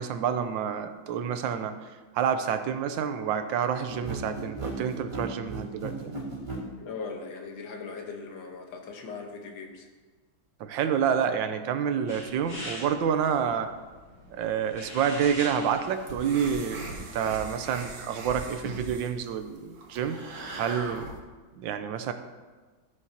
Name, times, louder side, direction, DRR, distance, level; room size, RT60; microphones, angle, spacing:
voice 1, 0.0-1.7 2.1-6.1 10.6-13.7 14.3-20.2 20.6-21.1 21.6-22.1, right 8 dB, 75° right, 9 dB, 1.3 m, -28 dB
sound 1, 3.9-6.7, right 2 dB, 15° right, 2.6 m, -35 dB
voice 2, 6.8-9.9, left 4 dB, 75° left, 2 dB, 1.8 m, -39 dB
sound 2, 12.1-17.5, equal, 50° left, 3.4 m, -43 dB
sound 3, 15.9-21.2, right 2 dB, 55° right, 1.5 m, -40 dB
14.0 x 7.2 x 2.8 m, 1.4 s
omnidirectional pair, 2.1 m